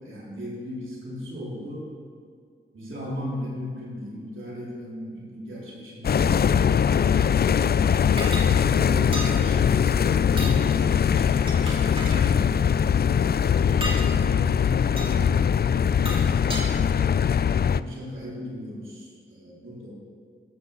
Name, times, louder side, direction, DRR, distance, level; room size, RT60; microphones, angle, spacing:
voice 1, 0.0-1.9 2.7-7.9 8.3-13.4 13.9-17.1 17.6-19.9, left 1 dB, 75° right, -5 dB, 3.8 m, -37 dB
sound 1, 6.0-17.8, left 7 dB, 50° left, 0.4 m, -21 dB
sound 2, 8.2-8.5 9.1-9.3 10.3-10.6 11.3-12.2 13.7-14.0 15.0-15.1 15.8-16.7, right 1 dB, 25° right, 3.3 m, -33 dB
14.0 x 6.2 x 7.3 m, 2.1 s
cardioid pair, 40°, 20 cm